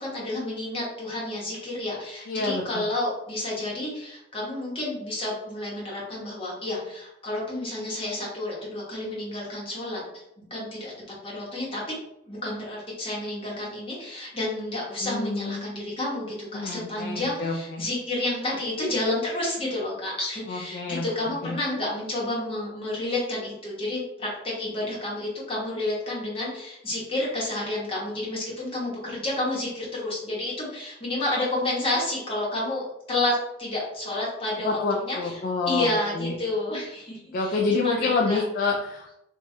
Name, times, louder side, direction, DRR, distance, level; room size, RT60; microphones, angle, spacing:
voice 1, 0.0-10.9 11.2-11.8 12.3-32.8 33.1-35.4 35.7-38.4, left 1 dB, 30° left, -5 dB, 1.0 m, -30 dB
voice 2, 2.3-2.9 15.0-15.6 16.5-17.8 20.5-21.6 34.6-35.9 36.2-36.4 37.3-39.2, left 3 dB, 50° left, 0 dB, 0.3 m, -28 dB
3.0 x 2.3 x 2.6 m, 0.82 s
head